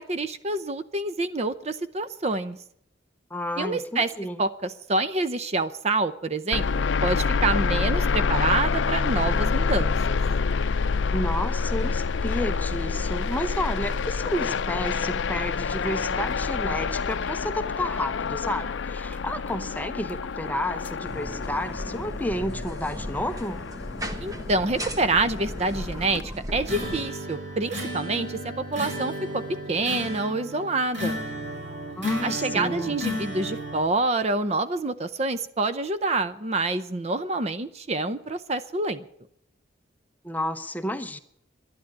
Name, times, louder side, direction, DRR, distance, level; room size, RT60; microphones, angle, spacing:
voice 1, 0.0-2.6 3.6-4.1 4.4-10.2 24.2-26.2 26.5-29.4 29.7-31.2 32.2-39.1, right 2 dB, 35° right, 12 dB, 0.6 m, -27 dB
voice 2, 3.3-4.4 11.1-23.6 32.0-33.0 40.2-41.2, left 1 dB, 10° left, 9 dB, 0.7 m, -31 dB
sound 1, 6.5-26.2, left 5 dB, 70° left, 0.5 m, -27 dB
sound 2, 21.0-27.0, equal, 20° right, 1.3 m, -36 dB
sound 3, 26.6-33.8, left 1 dB, 70° right, 6.5 m, -33 dB
11.5 x 11.5 x 8.5 m, 0.71 s
head